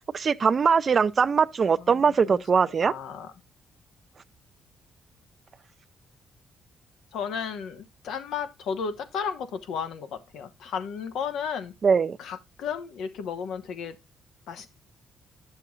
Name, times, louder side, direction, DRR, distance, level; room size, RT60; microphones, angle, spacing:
voice 1, 0.1-2.9 11.8-12.2, right 6 dB, 40° right, 0.4 m, -21 dB
voice 2, 1.8-2.4 2.8-3.3 7.1-11.7 12.2-14.0 14.5-14.7, left 6 dB, 80° left, 1.1 m, -34 dB
10.5 x 6.9 x 2.3 m
cardioid pair, 90°, 0 cm